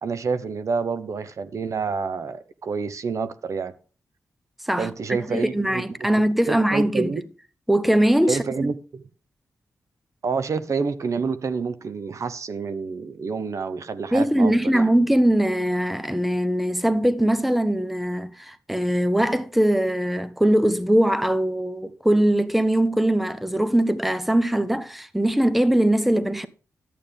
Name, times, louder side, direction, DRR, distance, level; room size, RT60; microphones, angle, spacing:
voice 1, 0.0-3.7 4.8-6.1 6.5-7.3 8.3-9.0 10.2-14.9, right 5 dB, 60° right, 0.9 m, -28 dB
voice 2, 4.6-7.1 7.7-8.7 14.1-26.5, right 1 dB, ahead, 0.7 m, -21 dB
11.5 x 8.5 x 3.5 m
cardioid pair, 85°, 6 cm